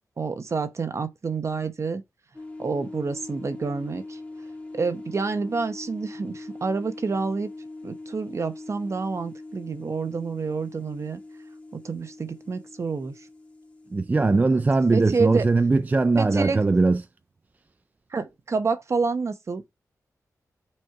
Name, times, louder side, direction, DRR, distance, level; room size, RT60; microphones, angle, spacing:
voice 1, 0.2-2.0 2.6-4.2 4.7-7.5 7.8-11.2 11.7-13.2 14.3-14.6 14.9-15.4 16.2-16.6 18.1-19.6, right 4 dB, 50° right, 0.9 m, -28 dB
sound 1, 2.3-16.5, left 2 dB, 20° left, 1.5 m, -42 dB
voice 2, 13.9-17.0, right 3 dB, 25° right, 0.4 m, -20 dB
6.5 x 4.4 x 4.4 m
wide cardioid pair, 95°, 6 cm